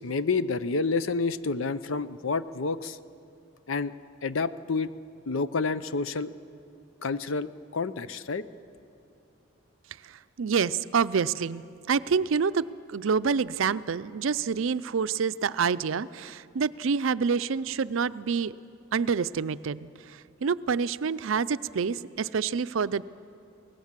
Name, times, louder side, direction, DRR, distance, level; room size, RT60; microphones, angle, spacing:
voice 1, 0.0-3.0 3.7-3.9 4.2-4.9 5.3-6.3 7.0-8.4, left 4 dB, 75° left, 14 dB, 0.7 m, -29 dB
voice 2, 10.0-18.5 18.9-23.0, right 5 dB, 75° right, 16 dB, 0.5 m, -27 dB
25.5 x 18.0 x 7.4 m, 2.6 s
head